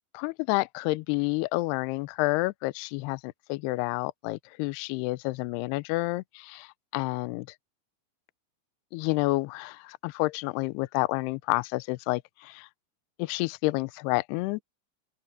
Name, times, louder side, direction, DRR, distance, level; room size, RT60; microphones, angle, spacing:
voice 1, 0.2-7.5 8.9-12.7 13.2-14.6, left 22 dB, 90° left, 2.3 m, -29 dB
open air
omnidirectional pair, 5.3 m